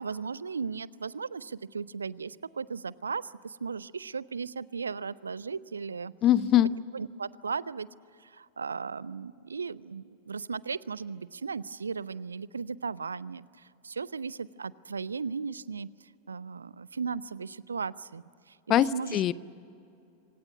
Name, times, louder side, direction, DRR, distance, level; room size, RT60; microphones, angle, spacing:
voice 1, 0.0-6.1 6.9-7.9 8.2-18.6 18.9-19.2, right 5 dB, 75° right, 22 dB, 0.5 m, -36 dB
voice 2, 6.2-6.7 18.7-19.3, left 12 dB, 35° left, 19 dB, 0.6 m, -22 dB
26.0 x 18.0 x 9.5 m, 2.6 s
figure-of-eight pair, 90°, 0 cm